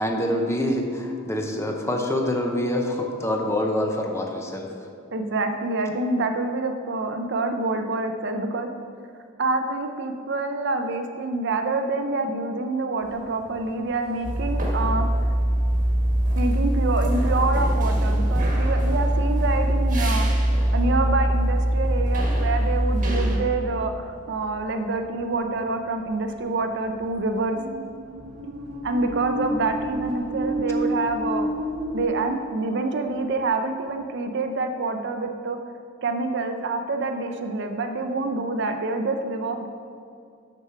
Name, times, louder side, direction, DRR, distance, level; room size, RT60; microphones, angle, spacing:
voice 1, 0.0-4.7, left 1 dB, 15° left, 2 dB, 0.7 m, -25 dB
voice 2, 5.1-8.7 9.4-15.1 16.4-20.3 20.7-27.6 28.8-31.5 31.9-35.6 36.0-39.7, right 3 dB, 60° right, 6 dB, 0.6 m, -27 dB
sound 1, 13.0-32.1, equal, 80° right, 1.0 m, -34 dB
sound 2, 14.2-23.4, right 1 dB, 40° right, 1.4 m, -22 dB
6.6 x 6.1 x 5.7 m, 2.4 s
head